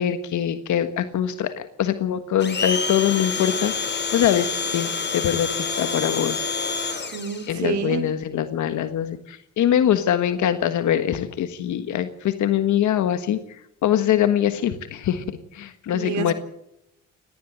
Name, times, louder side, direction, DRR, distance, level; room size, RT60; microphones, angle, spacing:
voice 1, 0.0-3.7 4.1-6.4 7.5-13.4 13.8-16.3, left 10 dB, 75° left, 10 dB, 1.5 m, -23 dB
Domestic sounds home sounds, 2.4-7.5, left 5 dB, 35° left, 4.5 m, -27 dB
voice 2, 7.1-8.0 15.9-16.3, right 7 dB, 70° right, 8 dB, 4.1 m, -28 dB
19.0 x 15.0 x 9.3 m, 0.80 s
cardioid pair, 90°, 30 cm